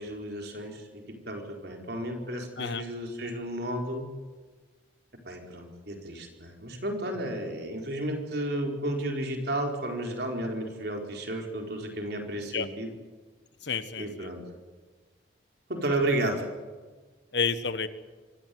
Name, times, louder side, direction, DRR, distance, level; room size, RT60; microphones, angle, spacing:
voice 1, 0.0-4.1 5.2-12.9 14.0-14.4 15.7-16.4, right 1 dB, 55° right, 3 dB, 4.5 m, -32 dB
voice 2, 13.6-14.3 17.3-17.9, left 5 dB, 65° left, 13 dB, 1.4 m, -30 dB
25.0 x 17.5 x 9.5 m, 1.4 s
head